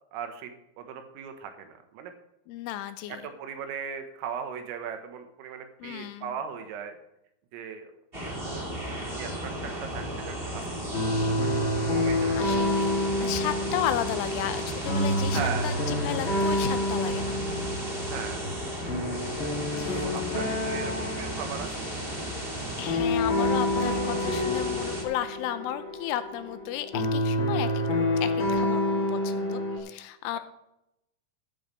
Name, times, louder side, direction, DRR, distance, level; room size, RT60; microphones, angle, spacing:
voice 1, 0.1-2.1 3.1-7.0 7.5-7.9 8.4-8.6 8.9-10.7 11.1-11.5 11.9-12.4 15.3-15.7 18.1-18.4 20.0-21.9 30.3-30.4, right 7 dB, 85° right, 6 dB, 4.0 m, -38 dB
voice 2, 2.5-3.2 5.8-6.3 12.4-12.9 13.2-17.4 19.7-20.1 20.5-20.6 22.8-28.8 29.1-30.4, left 12 dB, 80° left, 10 dB, 3.1 m, -34 dB
sound 1, 8.1-25.0, right 1 dB, 35° right, 0.8 m, -35 dB
sound 2, 10.9-29.8, left 1 dB, 35° left, 2.6 m, -28 dB
13.5 x 12.5 x 3.4 m, 0.84 s
omnidirectional pair, 5.8 m